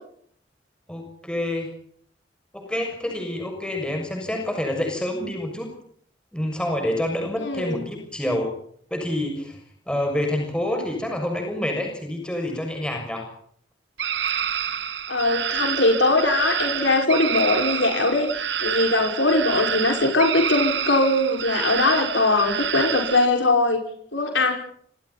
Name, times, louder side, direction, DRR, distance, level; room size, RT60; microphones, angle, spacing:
voice 1, 0.9-1.7 2.5-5.7 6.3-8.5 8.9-9.6 9.9-13.3, left 1 dB, 5° left, 3 dB, 6.6 m, -27 dB
voice 2, 7.4-7.8 15.1-23.8 24.1-24.5, left 2 dB, 90° left, 3 dB, 5.6 m, -21 dB
sound 1, 14.0-23.3, right 8 dB, 75° right, 1.5 m, -28 dB
29.5 x 28.0 x 4.2 m, 0.62 s
head